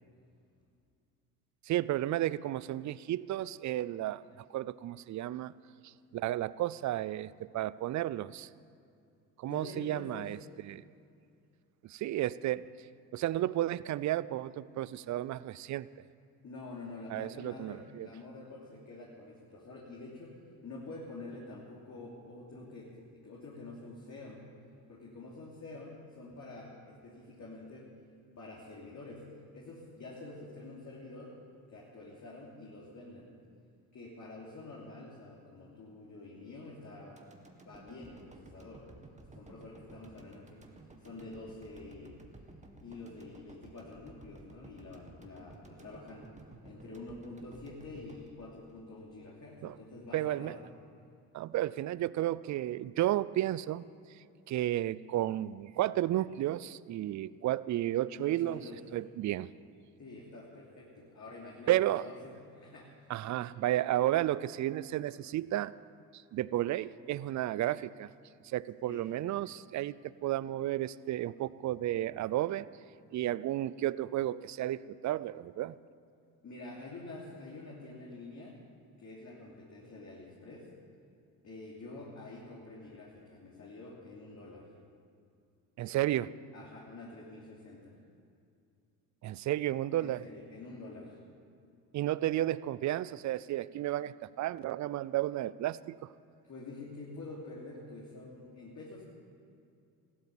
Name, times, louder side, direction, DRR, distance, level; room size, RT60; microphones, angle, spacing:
voice 1, 1.6-4.2 4.5-5.5 5.8-8.5 9.4-10.8 11.8-12.7 13.1-15.9 17.1-18.1 49.6-49.8 50.1-50.6 51.3-53.8 54.5-58.6 58.9-59.5 61.7-62.1 63.1-65.7 66.1-68.1 68.4-72.7 73.1-75.8 85.8-86.3 89.2-90.2 91.9-96.1, right 14 dB, 45° right, 19 dB, 0.5 m, -32 dB
voice 2, 9.4-10.3 16.4-24.4 24.9-27.9 28.4-29.3 29.5-31.4 31.7-33.3 33.9-37.2 37.7-38.8 39.3-42.2 42.8-46.3 46.6-50.6 58.1-58.8 60.0-63.1 68.9-69.1 76.4-78.6 79.0-80.7 81.4-84.7 86.5-88.0 90.0-91.2 96.4-99.0, left 2 dB, 45° left, -4 dB, 3.1 m, -47 dB
sound 1, 37.2-49.4 49.8-49.9, right 2 dB, 15° right, 1.9 m, -55 dB
15.0 x 12.5 x 7.1 m, 2.5 s
hypercardioid pair, 70°, 41 cm